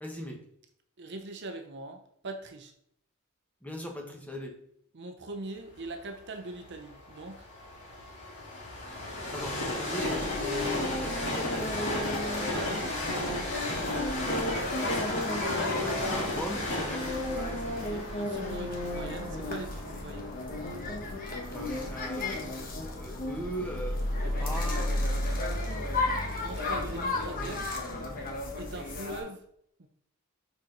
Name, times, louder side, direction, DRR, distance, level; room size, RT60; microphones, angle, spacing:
voice 1, 0.0-0.4 3.6-4.5 9.3-12.1 15.7-17.1 21.5-22.5 22.8-24.9 27.3-27.5, equal, 5° left, 1 dB, 1.0 m, -39 dB
voice 2, 1.0-2.7 4.9-7.5 12.4-13.4 17.7-20.4 24.2-24.9 25.2-25.4 26.4-27.7 28.6-29.4 29.8-29.9, right 2 dB, 50° right, 6 dB, 0.7 m, -42 dB
Train, 5.8-21.7 22.3-22.4, left 1 dB, 55° left, 2.2 m, -35 dB
sound 1, 10.0-29.2, left 2 dB, 40° left, 1.2 m, -33 dB
5.6 x 4.7 x 3.8 m, 0.69 s
head